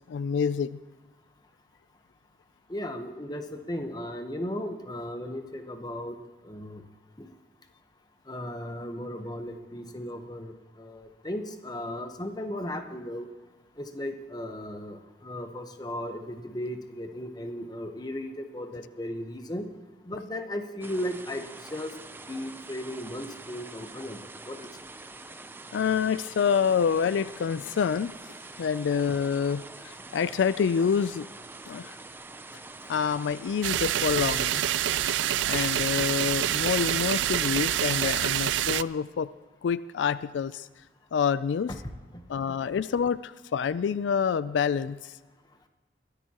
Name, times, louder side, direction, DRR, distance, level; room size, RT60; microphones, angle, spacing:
voice 1, 0.1-0.8 25.7-28.1 28.6-31.3 31.7-32.0 32.9-34.7 35.4-39.3 39.6-40.7 41.1-41.7 42.3-45.2, left 7 dB, 85° left, 16 dB, 0.3 m, -27 dB
voice 2, 2.7-6.2 6.4-6.8 7.2-7.3 8.3-13.3 13.8-19.7 20.0-21.9 22.2-24.7 41.8-42.6, left 1 dB, 20° left, 6 dB, 1.0 m, -36 dB
sound 1, 20.8-38.2, right 3 dB, 10° right, 0.4 m, -45 dB
sound 2, 33.6-38.8, right 12 dB, 85° right, 0.3 m, -27 dB
22.0 x 13.0 x 2.9 m, 1.3 s
head